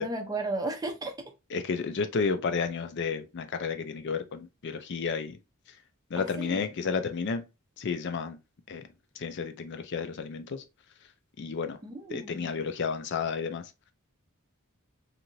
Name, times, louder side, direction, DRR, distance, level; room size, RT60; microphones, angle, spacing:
voice 1, 0.0-1.3 6.2-6.7 11.8-12.6, right 2 dB, 20° right, 0.5 m, -35 dB
voice 2, 1.5-5.4 6.1-7.4 7.8-8.4 8.7-8.8 9.2-10.6 11.4-11.8 12.1-13.6, left 5 dB, 55° left, 0.4 m, -31 dB
2.7 x 2.5 x 3.0 m
head